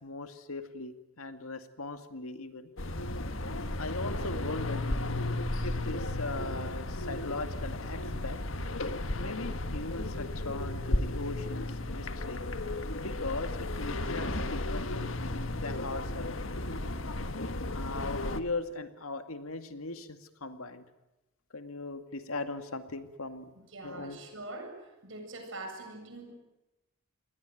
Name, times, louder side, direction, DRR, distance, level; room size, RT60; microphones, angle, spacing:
voice 1, 0.0-2.7 3.8-5.2 5.6-8.4 9.2-12.4 13.0-16.3 17.4-20.8 21.5-23.5 23.8-24.2, left 3 dB, 85° left, 8 dB, 2.2 m, -39 dB
sound 1, 2.8-18.4, left 1 dB, 65° left, 1.6 m, -34 dB
voice 2, 23.7-26.3, right 2 dB, 65° right, 4 dB, 7.8 m, -43 dB
28.0 x 21.0 x 9.3 m, 0.96 s
head